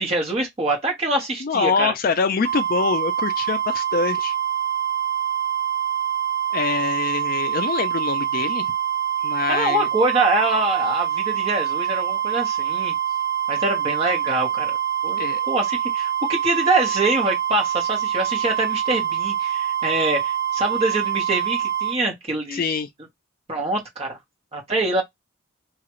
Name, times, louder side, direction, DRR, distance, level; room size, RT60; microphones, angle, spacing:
voice 1, 0.0-1.9 9.5-12.9 13.5-14.8 15.0-15.2 15.5-22.6 23.5-24.2 24.5-25.0, right 2 dB, 30° right, 1.1 m, -24 dB
voice 2, 1.4-4.3 6.5-8.7 9.2-9.9 15.2-15.4 22.5-22.9, left 5 dB, 45° left, 0.3 m, -24 dB
sound 1, 2.4-22.0, right 10 dB, 50° right, 1.0 m, -25 dB
2.9 x 2.4 x 2.9 m
head